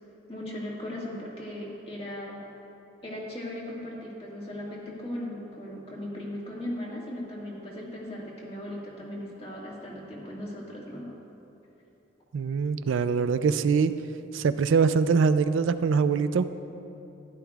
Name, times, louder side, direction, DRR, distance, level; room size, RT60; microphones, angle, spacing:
voice 1, 0.3-2.4 3.0-11.1, left 1 dB, 30° left, -4 dB, 1.8 m, -37 dB
voice 2, 12.3-13.9 14.3-16.4, right 5 dB, 85° right, 12 dB, 0.4 m, -23 dB
14.5 x 11.0 x 2.4 m, 2.9 s
head